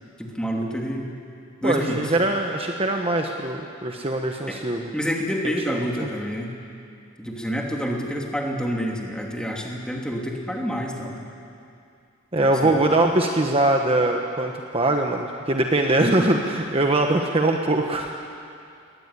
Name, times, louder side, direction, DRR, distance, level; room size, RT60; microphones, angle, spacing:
voice 1, 0.2-1.1 1.6-2.1 4.5-4.6 4.9-6.6 7.2-11.2 12.4-12.7, equal, 5° left, -1 dB, 2.7 m, -28 dB
voice 2, 1.6-4.9 6.0-6.1 12.3-18.2, right 2 dB, 30° right, 3 dB, 1.2 m, -22 dB
21.5 x 18.5 x 9.7 m, 2.5 s
head